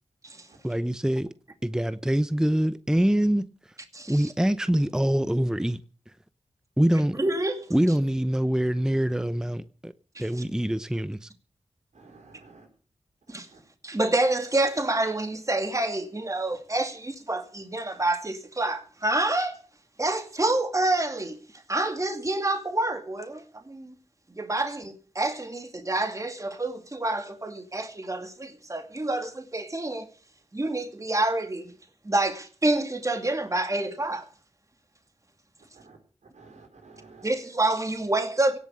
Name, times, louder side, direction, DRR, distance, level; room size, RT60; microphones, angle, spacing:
voice 1, 0.6-1.3 1.6-3.5 4.1-5.8 6.8-7.1 7.7-9.9 10.2-11.3, right 1 dB, 5° right, 0.7 m, -24 dB
voice 2, 3.9-4.3 6.9-7.7 10.1-10.2 13.3-13.5 13.8-19.6 20.0-21.3 21.7-23.9 24.4-30.1 30.5-31.7 32.0-34.3 37.2-38.6, right 2 dB, 25° right, 2.5 m, -27 dB
voice 3, 11.9-12.7 13.5-13.6 35.7-36.0 36.3-37.3, right 3 dB, 80° right, 5.0 m, -51 dB
18.0 x 7.3 x 8.5 m
wide cardioid pair, 60°, 12 cm